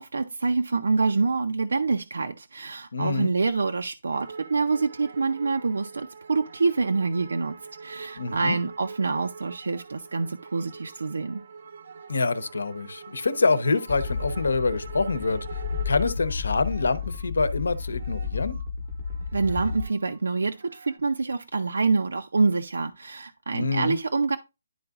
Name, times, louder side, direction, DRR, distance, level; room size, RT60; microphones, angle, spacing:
voice 1, 0.0-7.5 7.8-11.4 19.3-24.4, right 4 dB, 90° right, 0.6 m, -26 dB
voice 2, 2.9-3.3 8.2-8.6 12.1-18.6 23.5-24.0, left 3 dB, 85° left, 0.9 m, -26 dB
sound 1, 4.1-18.7 19.0-20.2 20.6-21.0, right 5 dB, 40° right, 0.5 m, -44 dB
sound 2, 13.9-19.8, left 5 dB, 30° left, 0.8 m, -32 dB
11.0 x 3.9 x 2.4 m
hypercardioid pair, 180°, 0 cm